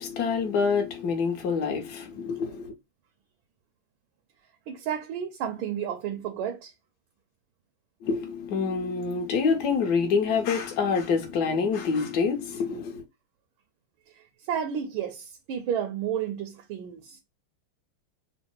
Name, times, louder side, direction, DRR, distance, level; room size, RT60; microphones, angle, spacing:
voice 1, 0.0-2.7 8.0-13.0, left 5 dB, 60° left, 1.2 m, -26 dB
voice 2, 4.7-6.7 14.5-17.2, right 9 dB, 75° right, 1.4 m, -31 dB
3.8 x 2.0 x 4.3 m
omnidirectional pair, 2.4 m